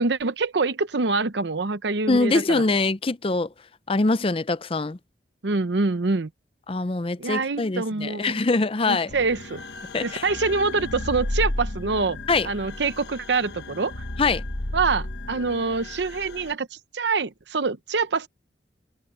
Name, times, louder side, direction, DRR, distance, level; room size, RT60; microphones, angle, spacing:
voice 1, 0.0-2.6 5.4-6.3 7.2-8.3 8.9-9.6 10.0-12.2 12.4-13.9 14.7-18.3, right 4 dB, 75° right, 0.8 m, -25 dB
voice 2, 2.1-3.5 3.9-5.0 6.7-9.1 9.9-10.3 12.3-12.5 14.2-14.4, left 3 dB, 30° left, 0.5 m, -23 dB
sound 1, 9.1-16.5, left 1 dB, 70° left, 1.5 m, -33 dB
head